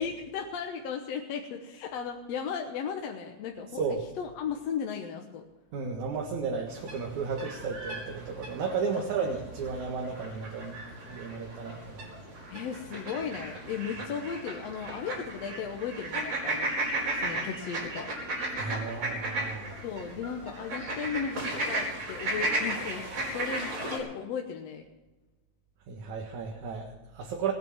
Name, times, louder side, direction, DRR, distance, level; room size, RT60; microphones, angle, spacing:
voice 1, 0.0-3.8 4.2-5.4 12.5-16.7 17.1-18.1 19.8-24.8, left 7 dB, 65° left, 3 dB, 2.1 m, -36 dB
voice 2, 3.7-4.0 5.7-10.8 11.1-12.1 18.6-19.8 25.9-27.5, right 5 dB, 75° right, 1 dB, 3.0 m, -33 dB
sound 1, 6.7-24.0, right 2 dB, 55° right, 5.7 m, -35 dB
20.0 x 9.3 x 7.3 m, 1.1 s
omnidirectional pair, 3.4 m